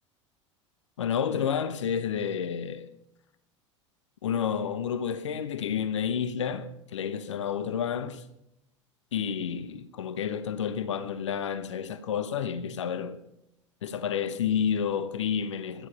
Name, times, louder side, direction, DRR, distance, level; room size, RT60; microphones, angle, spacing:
voice 1, 1.0-2.9 4.2-8.2 9.1-13.2 13.8-15.9, left 8 dB, 70° left, 1.0 m, -30 dB
17.0 x 12.5 x 5.3 m
figure-of-eight pair, 80°, 16 cm